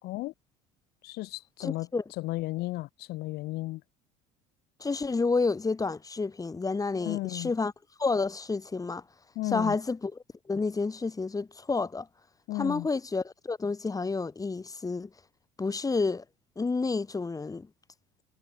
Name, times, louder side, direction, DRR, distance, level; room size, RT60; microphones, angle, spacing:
voice 1, 1.0-1.9 2.2-3.8 7.0-7.5 9.3-9.7 12.5-12.9, left 19 dB, 65° left, 3.3 m, -34 dB
voice 2, 1.6-2.0 4.8-7.7 8.0-9.0 9.4-12.1 12.5-15.1 15.6-16.2 16.6-17.7, left 4 dB, 20° left, 3.2 m, -30 dB
supercardioid pair, 85°, 18 cm